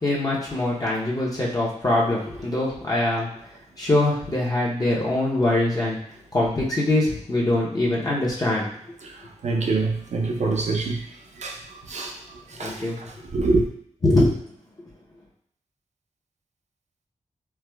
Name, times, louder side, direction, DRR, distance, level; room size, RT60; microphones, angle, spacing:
voice 1, 0.0-3.3 3.8-6.0 6.3-8.7 12.6-13.0 14.0-14.4, left 2 dB, 30° left, -5 dB, 0.7 m, -23 dB
voice 2, 9.4-11.0 11.4-11.6 11.9-12.1 12.6-13.6, right 3 dB, 65° right, 2 dB, 0.5 m, -25 dB
4.5 x 2.1 x 2.2 m, 0.68 s
wide cardioid pair, 105°, 13 cm